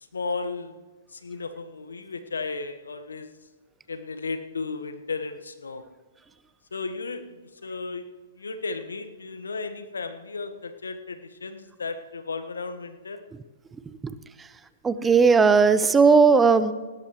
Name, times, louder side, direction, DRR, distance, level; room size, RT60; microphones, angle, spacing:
voice 1, 0.1-0.8 1.1-3.3 3.9-5.8 6.7-8.1 8.3-13.2, left 4 dB, 80° left, 9 dB, 1.3 m, -34 dB
voice 2, 14.8-16.7, right 5 dB, 15° right, 13 dB, 0.7 m, -17 dB
19.5 x 17.0 x 3.1 m, 1.3 s
figure-of-eight pair, 115°, 0 cm